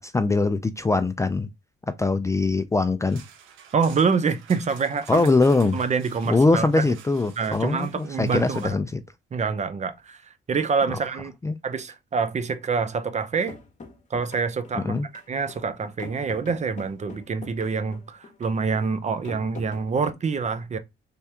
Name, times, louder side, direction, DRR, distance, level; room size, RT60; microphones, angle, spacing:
voice 1, 0.0-1.5 2.0-3.2 5.1-5.8 6.3-9.0 10.9-11.0 11.4-11.6 14.7-15.1, left 3 dB, 15° left, 0.3 m, -22 dB
sound 1, 3.0-8.7, right 7 dB, 90° right, 0.8 m, -48 dB
voice 2, 3.7-5.3 5.7-6.7 7.4-8.8 9.3-11.3 11.6-13.6 14.1-14.9 15.3-20.8, right 5 dB, 35° right, 0.6 m, -26 dB
sound 2, 13.5-20.1, left 4 dB, 40° left, 1.1 m, -44 dB
3.5 x 2.8 x 3.4 m
cardioid pair, 90°, 20 cm